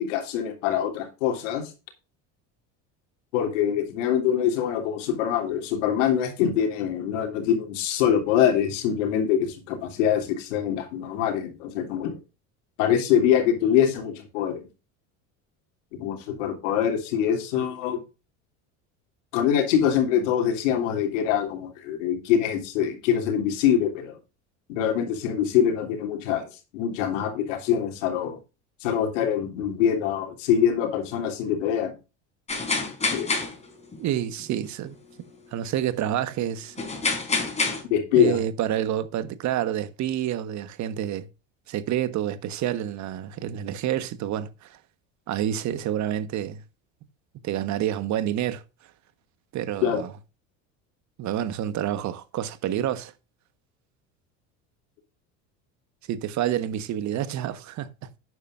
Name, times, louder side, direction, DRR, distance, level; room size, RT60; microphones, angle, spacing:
voice 1, 0.0-1.7 3.3-12.2 12.8-14.7 16.0-18.0 19.3-24.2 24.7-26.5 26.7-28.4 28.8-31.9 33.1-33.3 37.9-38.4 49.8-50.0, left 9 dB, 90° left, 3.1 m, -24 dB
sound 1, 32.5-34.0 34.4-34.5 36.8-37.8, left 3 dB, 20° left, 4.1 m, -27 dB
voice 2, 34.0-34.9 35.5-36.7 38.1-41.3 41.7-44.8 45.3-46.6 47.4-48.6 49.5-50.1 51.2-53.1 56.1-57.9, right 11 dB, 50° right, 1.3 m, -28 dB
11.5 x 9.5 x 2.6 m
supercardioid pair, 110°, 36 cm